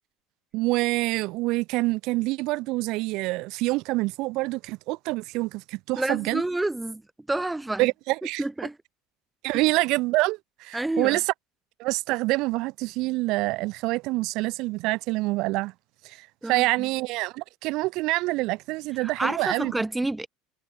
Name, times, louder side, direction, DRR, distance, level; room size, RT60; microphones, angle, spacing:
voice 1, 0.5-6.4 7.8-8.4 9.4-11.3 11.8-15.7 16.0-19.7, right 21 dB, 65° right, 1.3 m, -26 dB
voice 2, 6.0-7.0 7.3-7.9 8.4-8.8 9.5-9.6 10.7-11.2 16.4-16.9 19.0-20.3, right 2 dB, 10° right, 2.5 m, -29 dB
supercardioid pair, 105°, 0 cm